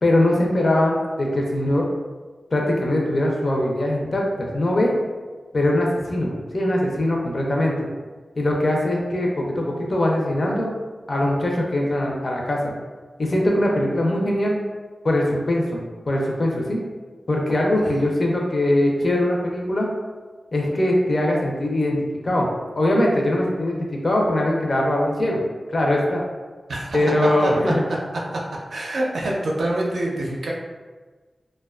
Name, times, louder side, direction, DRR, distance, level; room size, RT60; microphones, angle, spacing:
voice 1, 0.0-1.8 2.5-4.9 5.5-7.9 8.4-10.7 11.1-12.7 13.2-14.5 15.0-16.8 17.3-19.9 20.5-22.5 22.7-25.4 25.7-26.2 26.9-27.8, left 1 dB, 50° left, -1 dB, 0.5 m, -21 dB
voice 2, 28.7-30.5, right 1 dB, 80° right, -3 dB, 0.5 m, -26 dB
2.4 x 2.2 x 2.3 m, 1.4 s
wide cardioid pair, 90°, 0 cm